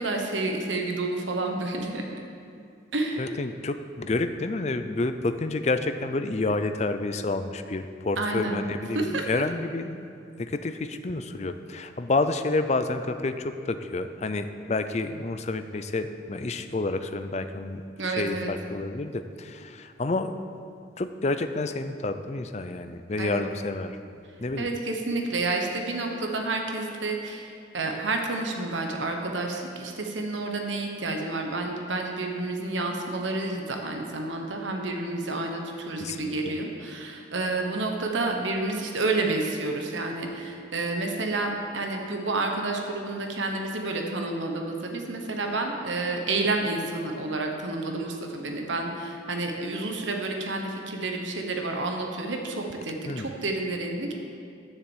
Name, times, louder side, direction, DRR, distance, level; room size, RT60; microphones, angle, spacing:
voice 1, 0.0-2.0 2.9-3.3 8.2-8.6 8.9-9.4 18.0-18.5 23.2-23.4 24.6-54.2, right 2 dB, 75° right, 2 dB, 1.2 m, -30 dB
voice 2, 3.2-10.1 10.4-20.4 21.0-24.0 24.4-24.7 36.0-36.5 53.1-53.3, left 2 dB, 35° left, 9 dB, 0.5 m, -29 dB
10.5 x 7.1 x 7.2 m, 2.4 s
head